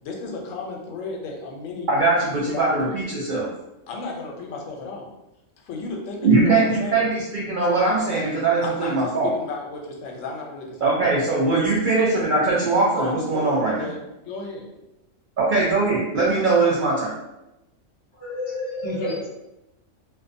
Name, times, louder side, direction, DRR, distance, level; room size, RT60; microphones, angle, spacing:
voice 1, 0.0-1.9 2.5-3.0 3.9-5.1 5.6-7.1 8.6-11.7 13.0-14.7, left 3 dB, 75° left, 0 dB, 0.9 m, -34 dB
voice 2, 1.9-3.5 6.2-9.3 10.8-13.8 15.4-17.1, right 3 dB, 75° right, -5 dB, 0.4 m, -21 dB
voice 3, 18.2-19.3, left 2 dB, 45° left, -9 dB, 0.4 m, -29 dB
2.4 x 2.2 x 2.5 m, 0.93 s
omnidirectional pair, 1.4 m